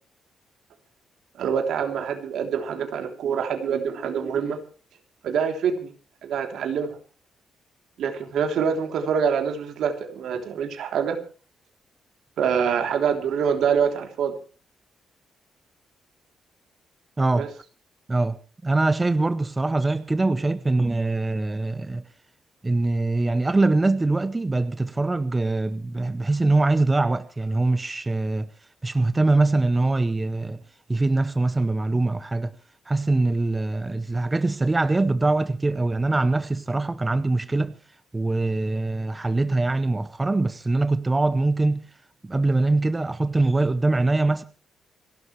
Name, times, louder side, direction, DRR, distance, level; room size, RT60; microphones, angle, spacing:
voice 1, 1.4-4.6 5.2-5.9 6.2-7.0 8.0-11.2 12.4-14.3 17.3-17.5, right 7 dB, 70° right, 3.2 m, -25 dB
voice 2, 17.2-17.5 18.1-18.4 18.6-22.0 22.6-28.5 28.8-30.6 30.9-32.5 32.9-37.8 38.1-41.8 42.2-44.4, right 2 dB, 15° right, 0.7 m, -23 dB
28.5 x 12.0 x 3.2 m
cardioid pair, 160°, 0 cm